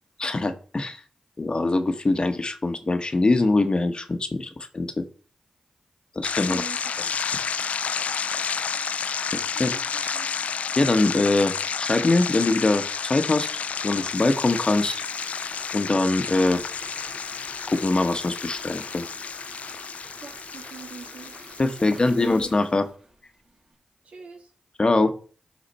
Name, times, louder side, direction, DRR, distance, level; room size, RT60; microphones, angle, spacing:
voice 1, 0.2-1.0 1.4-5.0 6.1-6.6 9.6-9.7 10.8-15.0 15.7-16.6 17.7-19.1 21.6-22.9 24.8-25.1, left 2 dB, 40° left, 9 dB, 1.2 m, -23 dB
sound 1, 6.2-22.4, left 6 dB, 75° left, 0.4 m, -31 dB
voice 2, 6.4-6.8 9.5-10.3 20.2-21.3 24.0-24.5, right 5 dB, 70° right, 2 dB, 2.4 m, -43 dB
Water tap faucet / Fill (with liquid), 13.5-23.8, right 2 dB, 45° right, 4.9 m, -47 dB
11.5 x 4.2 x 4.3 m, 0.40 s
cardioid pair, 45°, 2 cm